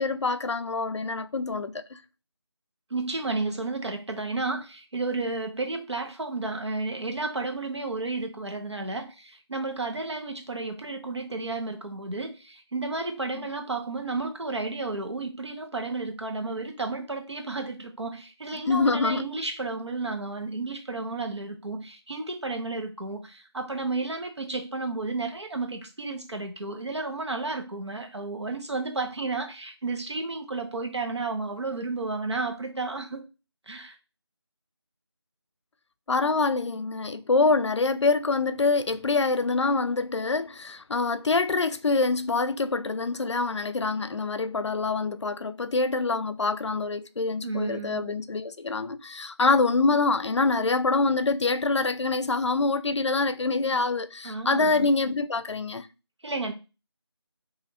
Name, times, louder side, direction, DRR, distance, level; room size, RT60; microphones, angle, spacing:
voice 1, 0.0-2.0 13.3-13.5 18.5-19.3 36.1-55.9, left 3 dB, 85° left, 0.5 m, -25 dB
voice 2, 2.9-33.2 33.7-34.0 47.4-48.2 54.2-54.8 56.2-56.5, right 3 dB, 75° right, 1.1 m, -32 dB
4.9 x 2.7 x 2.8 m
figure-of-eight pair, 175°, 14 cm